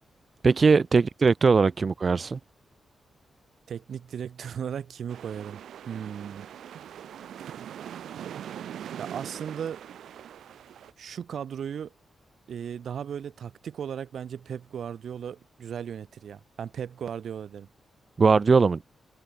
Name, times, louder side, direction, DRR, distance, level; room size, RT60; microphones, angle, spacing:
voice 1, 0.4-2.4 18.2-18.8, right 4 dB, 35° right, 0.6 m, -20 dB
voice 2, 3.7-6.5 9.0-9.8 11.0-11.9 12.5-17.7, right 8 dB, 70° right, 4.4 m, -36 dB
sound 1, 5.1-10.9, right 10 dB, 90° right, 1.0 m, -41 dB
wide cardioid pair, 125°, 0 cm